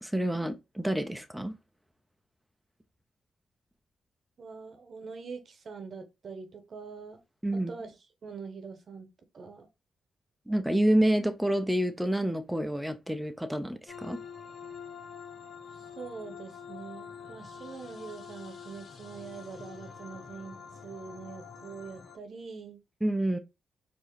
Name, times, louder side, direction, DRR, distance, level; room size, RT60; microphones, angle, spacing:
voice 1, 0.0-1.5 7.4-7.7 10.5-14.2 23.0-23.4, right 1 dB, 5° right, 0.6 m, -28 dB
voice 2, 4.4-7.2 7.7-7.9 8.2-9.1 9.3-9.7 15.7-20.6 20.8-22.8, right 5 dB, 60° right, 0.9 m, -44 dB
sound 1, 13.9-22.2, left 6 dB, 60° left, 0.9 m, -46 dB
4.7 x 2.7 x 3.1 m
supercardioid pair, 55°, 0 cm